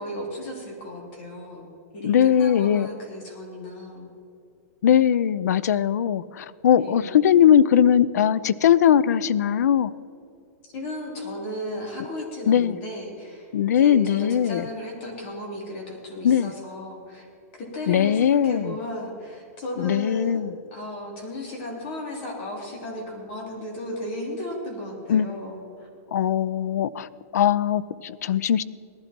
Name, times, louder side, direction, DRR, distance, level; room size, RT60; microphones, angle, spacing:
voice 1, 0.0-1.7 1.9-4.1 6.8-7.1 10.6-17.3 17.5-20.4 20.7-25.9, left 1 dB, 40° left, 0 dB, 3.3 m, -35 dB
voice 2, 2.0-2.9 4.8-9.9 12.5-12.8 13.5-14.6 16.2-16.5 17.9-18.7 19.8-20.5 25.1-25.3 26.1-27.1 27.3-28.6, left 9 dB, 80° left, 19 dB, 0.5 m, -20 dB
18.0 x 12.0 x 4.4 m, 2.5 s
supercardioid pair, 165°, 9 cm